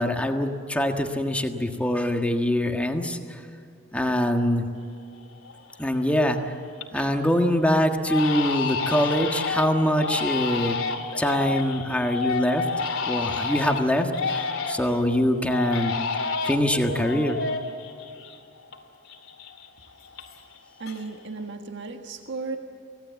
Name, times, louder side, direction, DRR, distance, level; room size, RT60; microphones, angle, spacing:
voice 1, 0.0-3.2 3.9-4.7 5.8-6.5 6.9-10.8 11.2-12.6 13.1-15.9 16.4-17.4, equal, 5° left, 4 dB, 1.6 m, -24 dB
Crying sobbing, 4.9-5.0 5.4-5.9 6.3-7.1 7.4-7.6 8.0-15.0 15.4-18.8 19.0-20.6 20.8-21.4, left 4 dB, 90° left, 2.7 m, -30 dB
voice 2, 20.8-22.6, right 4 dB, 60° right, 4 dB, 1.6 m, -35 dB
25.0 x 18.0 x 8.4 m, 2.5 s
head